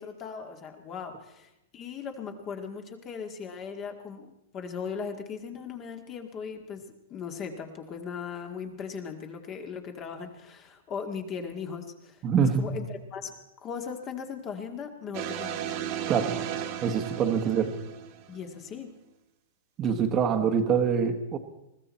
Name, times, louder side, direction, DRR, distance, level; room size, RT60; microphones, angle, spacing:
voice 1, 0.0-6.8 7.1-13.3 13.6-15.6 18.3-18.9, left 6 dB, 30° left, 5 dB, 1.8 m, -38 dB
voice 2, 12.2-12.6 16.1-16.3 16.8-17.7 19.8-21.4, right 7 dB, 30° right, 6 dB, 1.4 m, -25 dB
sound 1, 15.1-18.6, right 10 dB, 45° right, 1.7 m, -35 dB
20.5 x 14.5 x 4.3 m, 0.88 s
hypercardioid pair, 140°, 0 cm